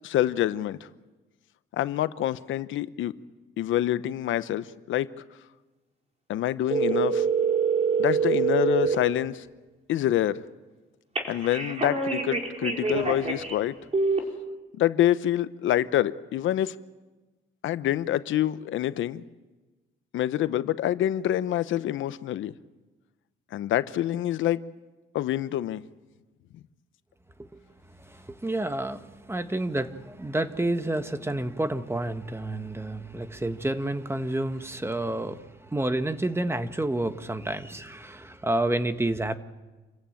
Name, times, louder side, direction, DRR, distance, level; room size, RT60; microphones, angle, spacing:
voice 1, 0.0-0.9 1.7-3.1 3.6-5.1 6.3-7.3 8.0-9.5 9.9-10.4 11.3-13.7 14.8-16.8 17.6-19.2 20.1-22.5 23.5-24.6 25.1-25.8, left 12 dB, 80° left, 14 dB, 0.8 m, -26 dB
sound 1, 6.7-9.0 11.2-13.6 13.9-14.2, right 5 dB, 35° right, 4.7 m, -25 dB
voice 2, 27.9-39.4, right 1 dB, 10° right, 10 dB, 1.3 m, -29 dB
27.5 x 15.5 x 9.0 m, 1.2 s
cardioid pair, 90°, 20 cm